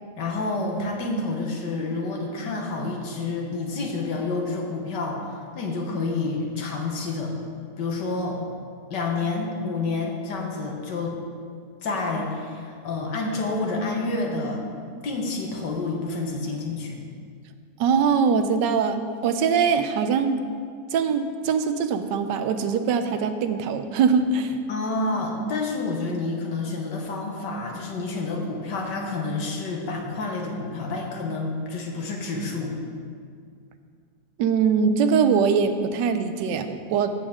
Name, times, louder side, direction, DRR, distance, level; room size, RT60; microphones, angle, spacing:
voice 1, 0.2-7.3 7.8-8.5 8.9-11.2 11.8-14.6 15.0-17.0 24.7-32.8, left 3 dB, 80° left, 0 dB, 1.8 m, -29 dB
voice 2, 17.8-20.5 20.9-24.6 34.4-37.1, right 6 dB, 90° right, 9 dB, 1.3 m, -22 dB
14.0 x 7.0 x 3.6 m, 2.2 s
omnidirectional pair, 1.8 m